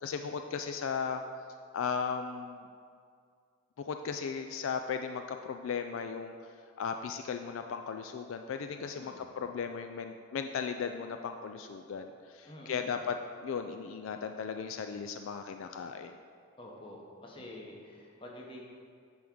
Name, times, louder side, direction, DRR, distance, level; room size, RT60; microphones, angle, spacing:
voice 1, 0.0-1.2 1.7-2.7 3.8-6.3 6.8-16.1, left 6 dB, 70° left, 6 dB, 0.3 m, -36 dB
voice 2, 8.9-9.3 12.5-12.9 16.6-18.6, left 1 dB, 25° left, -1 dB, 1.0 m, -48 dB
8.5 x 3.6 x 6.1 m, 2.2 s
head